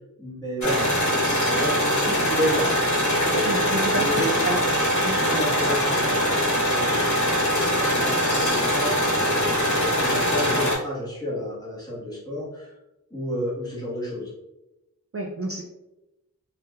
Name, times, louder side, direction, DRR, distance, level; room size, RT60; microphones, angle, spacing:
voice 1, 0.2-3.6 3.9-4.6 5.2-6.2 6.6-8.9 9.7-12.7 13.1-14.3, equal, 10° left, -6 dB, 1.2 m, -31 dB
sound 1, 0.6-10.7, equal, 60° left, 1.0 m, -22 dB
voice 2, 3.3-5.3 6.8-6.9 15.1-15.6, right 2 dB, 45° right, 0 dB, 0.4 m, -30 dB
3.3 x 2.9 x 2.3 m, 0.96 s
wide cardioid pair, 50°, 33 cm